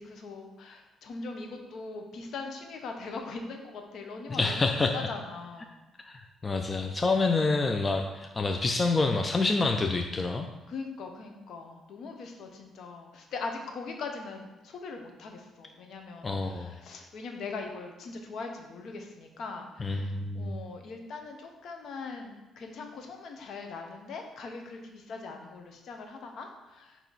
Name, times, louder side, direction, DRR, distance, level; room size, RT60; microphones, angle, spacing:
voice 1, 0.0-4.7 4.9-5.7 10.7-27.0, left 4 dB, 70° left, 3 dB, 1.0 m, -41 dB
voice 2, 4.3-4.9 6.0-10.5 16.2-16.7 19.8-20.6, left 3 dB, 30° left, 4 dB, 0.5 m, -27 dB
8.3 x 3.0 x 4.1 m, 1.0 s
cardioid pair, 90°, 0 cm